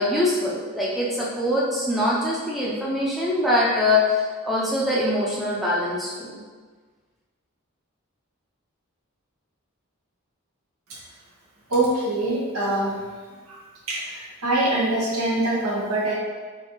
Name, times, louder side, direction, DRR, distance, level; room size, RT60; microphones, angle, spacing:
voice 1, 0.0-6.4, left 1 dB, ahead, -7 dB, 0.6 m, -23 dB
voice 2, 11.7-13.0 13.5-13.6 13.9-16.1, right 1 dB, 75° right, -5 dB, 1.2 m, -24 dB
4.1 x 3.9 x 3.1 m, 1.5 s
head